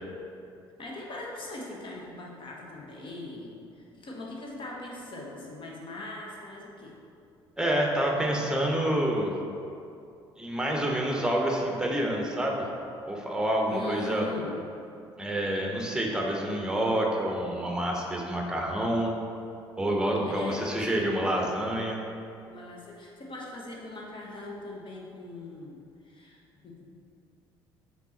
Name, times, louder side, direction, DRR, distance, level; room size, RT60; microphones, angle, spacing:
voice 1, 0.8-7.0 13.6-14.5 20.2-20.9 22.5-26.9, left 2 dB, 40° left, -2 dB, 1.3 m, -41 dB
voice 2, 7.6-9.3 10.4-12.6 13.0-14.3 15.2-19.1 19.8-22.0, right 1 dB, 5° right, 0 dB, 1.1 m, -28 dB
5.9 x 3.9 x 4.3 m, 2.5 s
figure-of-eight pair, 55°, 13 cm